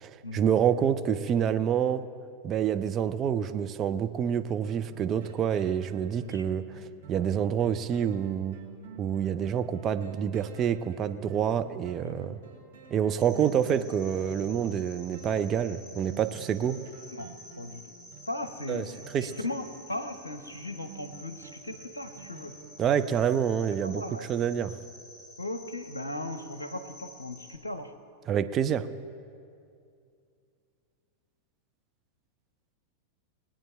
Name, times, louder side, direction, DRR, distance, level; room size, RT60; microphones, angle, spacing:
voice 1, 0.0-2.0 2.4-6.8 7.1-8.6 9.0-12.4 12.9-16.8 18.7-18.9 19.1-19.3 22.8-24.0 24.3-24.7 28.3-28.9, right 8 dB, 30° right, 9 dB, 0.6 m, -27 dB
sound 1, 4.6-23.3 23.8-23.9, right 6 dB, 60° right, 2.2 m, -50 dB
voice 2, 6.2-6.5 12.0-12.4 13.3-13.5 17.1-17.3 17.6-17.9 18.3-18.9 19.2-22.6 23.8-24.3 25.4-27.9, left 2 dB, 80° left, 8 dB, 0.8 m, -38 dB
Cricket, 13.2-27.6, left 1 dB, 15° left, 2.6 m, -50 dB
21.0 x 8.8 x 4.4 m, 2.4 s
figure-of-eight pair, 90°, 0 cm